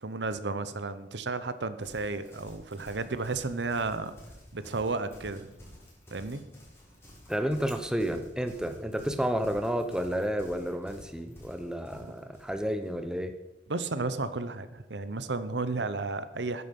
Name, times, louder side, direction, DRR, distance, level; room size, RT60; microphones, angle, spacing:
voice 1, 0.0-4.2 4.5-5.5 6.1-6.4 11.9-12.1 13.7-16.6, right 3 dB, 75° right, 13 dB, 0.9 m, -33 dB
Livestock farm animals working animals, 1.8-13.0, equal, 15° left, 4.4 m, -52 dB
voice 2, 7.3-13.3, equal, 5° right, 7 dB, 0.8 m, -31 dB
13.0 x 9.8 x 5.4 m, 0.96 s
head